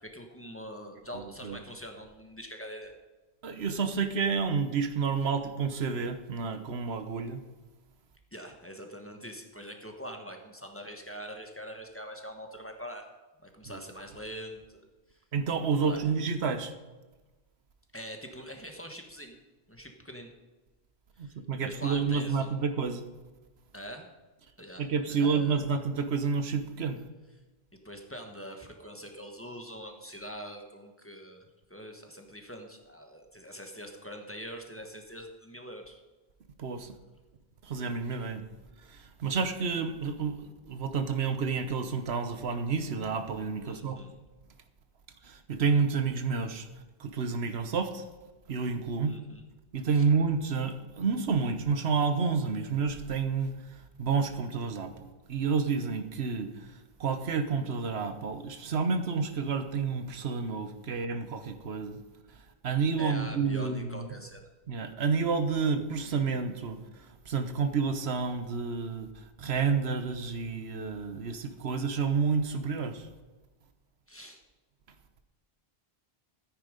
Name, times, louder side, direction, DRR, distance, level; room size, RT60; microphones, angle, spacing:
voice 1, 0.0-2.9 8.3-13.1 13.4-14.8 15.1-15.2 15.8-16.3 17.9-19.4 19.7-20.3 21.2-21.4 21.6-22.5 23.7-24.1 24.6-25.7 27.8-36.0 43.6-44.1 49.0-49.4 49.9-50.0 63.0-64.5 74.1-74.4, equal, 15° left, 3 dB, 1.4 m, -44 dB
voice 2, 3.4-7.4 13.7-13.8 15.3-16.7 21.2-23.0 24.8-27.0 36.6-36.9 37.6-38.4 38.9-44.0 45.2-46.7 47.0-48.0 48.5-49.2 49.7-53.6 54.0-56.7 57.0-62.0 62.6-64.1 64.7-73.1, right 5 dB, 90° right, 10 dB, 1.2 m, -30 dB
13.5 x 9.7 x 5.2 m, 1.2 s
omnidirectional pair, 1.1 m